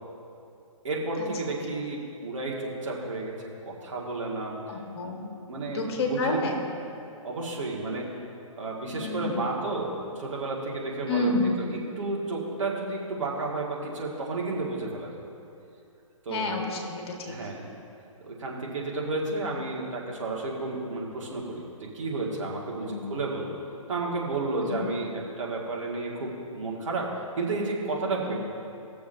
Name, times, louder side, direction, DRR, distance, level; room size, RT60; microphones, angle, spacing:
voice 1, 0.8-3.3 3.6-4.6 5.0-5.1 5.5-6.5 7.2-8.1 8.6-11.3 11.7-15.2 16.3-16.5 17.3-17.7 18.2-21.6 21.9-23.5 23.9-25.1 25.4-27.1 27.4-28.3, right 3 dB, 65° right, -3 dB, 2.0 m, -32 dB
voice 2, 4.7-5.2 5.7-6.5 8.9-9.5 11.1-11.6 16.3-17.3 22.8-23.0 24.6-24.9 28.2-28.3, left 2 dB, 50° left, 1 dB, 1.6 m, -29 dB
18.0 x 6.8 x 2.7 m, 2.7 s
hypercardioid pair, 135°, 17 cm